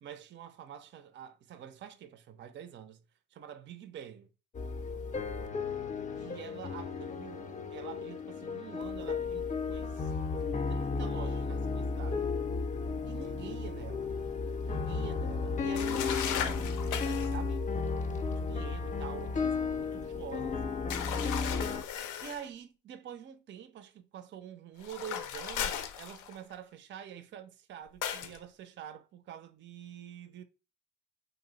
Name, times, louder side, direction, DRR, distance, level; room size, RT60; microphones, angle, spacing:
voice 1, 0.0-3.0 3.3-4.3 6.1-10.4 10.7-12.3 13.1-14.2 14.7-20.7 22.2-30.4, right 9 dB, 40° right, 0.4 m, -47 dB
sound 1, 4.5-21.8, left 4 dB, 25° left, 0.4 m, -34 dB
sound 2, 15.8-17.4 20.9-22.5 24.8-26.5 28.0-28.4, left 9 dB, 80° left, 0.5 m, -36 dB
2.6 x 2.0 x 3.7 m
cardioid pair, 90°, 30 cm